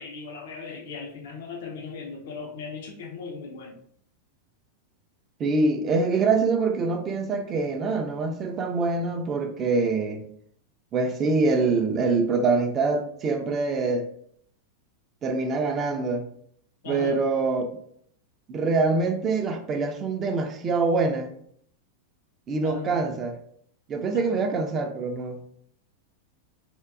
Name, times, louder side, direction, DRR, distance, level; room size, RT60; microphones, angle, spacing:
voice 1, 0.0-3.8 16.8-17.2 22.6-23.1 24.1-24.4, left 4 dB, 55° left, 0.4 m, -38 dB
voice 2, 5.4-10.2 10.9-14.1 15.2-16.3 16.9-17.6 18.5-21.3 22.5-23.4 23.9-25.4, right 3 dB, 30° right, 0.4 m, -25 dB
3.5 x 2.2 x 2.5 m
figure-of-eight pair, 90°, 0 cm